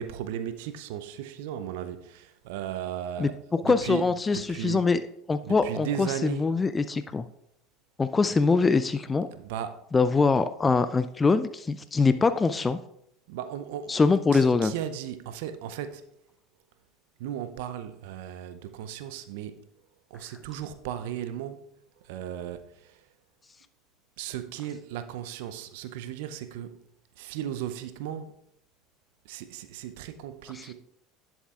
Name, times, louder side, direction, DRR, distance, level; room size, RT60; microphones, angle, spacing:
voice 1, 0.0-3.4 3.6-4.9 5.4-6.5 9.3-9.8 13.3-14.0 14.3-16.0 17.2-19.7 20.1-21.7 22.0-23.0 24.2-26.8 27.2-28.3 29.3-30.7, right 10 dB, 70° right, 0.5 m, -36 dB
voice 2, 3.2-5.0 5.3-7.2 8.0-9.3 9.9-12.8 13.9-14.7 30.5-30.7, left 4 dB, 20° left, 0.4 m, -23 dB
10.5 x 7.1 x 2.4 m
hypercardioid pair, 80°, 0 cm